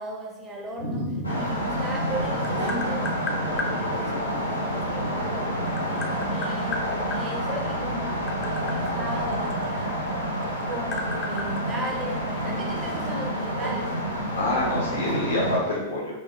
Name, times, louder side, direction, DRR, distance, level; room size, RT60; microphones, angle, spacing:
voice 1, 0.0-10.4 10.7-13.9, right 1 dB, 25° right, 0 dB, 0.5 m, -37 dB
Dog, 0.6-0.7 1.0-1.1 1.7-3.3 3.7-4.0 4.6-6.1 6.5-7.5 8.1-8.2 8.6-11.0 11.6-12.2 13.5-14.3 15.0-15.4, right 1 dB, 85° right, 0.6 m, -40 dB
voice 2, 0.8-1.4 14.3-16.1, left 1 dB, 70° left, -3 dB, 0.9 m, -27 dB
sound 1, 1.2-15.6, equal, 85° left, 0.5 m, -28 dB
Tap, 2.1-3.7 5.1-7.2 8.0-10.1 10.4-12.4, left 3 dB, 30° left, 0.4 m, -34 dB
3.0 x 2.0 x 2.8 m, 0.99 s
figure-of-eight pair, 95°, 0 cm